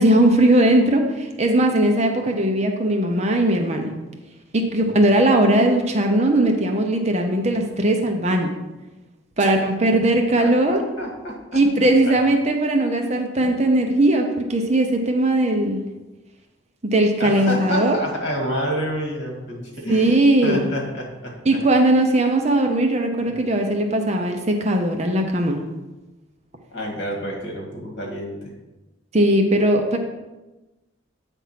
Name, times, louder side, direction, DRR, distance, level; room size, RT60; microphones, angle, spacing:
voice 1, 0.0-3.9 4.5-8.5 9.4-10.8 11.5-15.8 16.8-18.0 19.9-20.7 21.5-25.6 29.1-30.0, right 1 dB, 30° right, 3 dB, 0.7 m, -19 dB
voice 2, 10.4-11.6 12.0-12.1 13.4-13.5 17.2-21.6 23.2-23.4 26.7-28.5, equal, 55° left, 0 dB, 1.8 m, -29 dB
8.3 x 3.6 x 5.8 m, 1.1 s
head